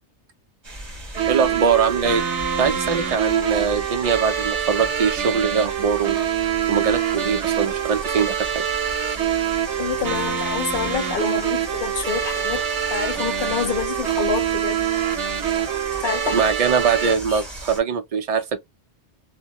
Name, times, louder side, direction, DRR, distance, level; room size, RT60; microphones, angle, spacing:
sound 1, 0.6-17.8, right 1 dB, 25° right, 0.8 m, -37 dB
sound 2, 1.1-17.1, right 9 dB, 80° right, 1.0 m, -25 dB
voice 1, 1.3-2.3 2.6-8.6 16.3-18.6, right 6 dB, 60° right, 0.3 m, -22 dB
voice 2, 9.8-14.9 16.0-16.4 17.3-17.4, left 7 dB, 55° left, 0.8 m, -27 dB
2.2 x 2.0 x 2.8 m
omnidirectional pair, 1.2 m